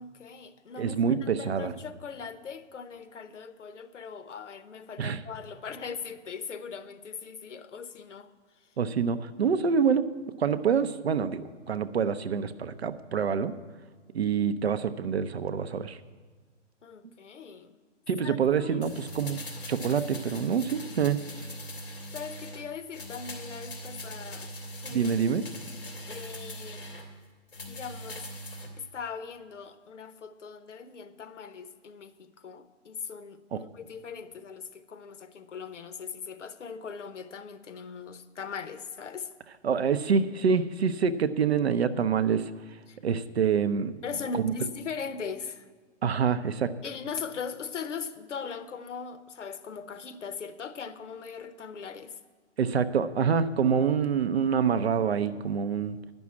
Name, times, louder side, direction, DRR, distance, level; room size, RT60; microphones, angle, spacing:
voice 1, 0.0-8.3 16.8-17.8 18.2-18.9 22.1-24.5 24.8-25.1 26.1-26.8 27.7-28.3 28.8-39.3 42.9-43.0 44.0-45.7 46.8-52.1, left 6 dB, 75° left, 0.9 m, -40 dB
voice 2, 0.8-1.7 5.0-5.2 8.8-10.1 10.4-13.5 14.1-16.0 18.1-19.4 19.7-21.2 24.9-25.4 33.5-33.6 39.6-42.5 43.0-44.0 46.0-46.7 52.6-56.0, right 6 dB, 60° right, 0.6 m, -26 dB
sound 1, 18.8-22.6 22.9-27.1 27.5-28.7 29.0-29.1, equal, 50° left, 2.5 m, -41 dB
10.5 x 6.2 x 8.3 m
hypercardioid pair, 180°, 37 cm